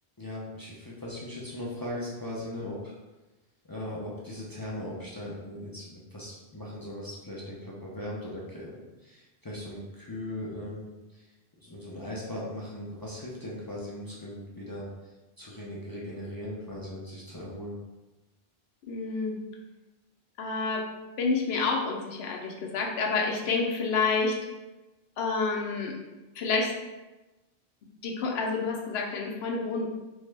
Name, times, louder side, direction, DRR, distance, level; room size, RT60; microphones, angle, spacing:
voice 1, 0.2-2.9 3.7-10.9 11.1-11.3 11.6-14.9 15.4-17.7, left 1 dB, 35° left, -6 dB, 0.4 m, -38 dB
voice 2, 18.9-19.4 20.4-20.8 21.2-24.3 25.2-26.0 26.3-26.7 28.0-29.9, left 4 dB, 80° left, 0 dB, 0.8 m, -28 dB
3.5 x 2.1 x 3.2 m, 1.1 s
omnidirectional pair, 1.1 m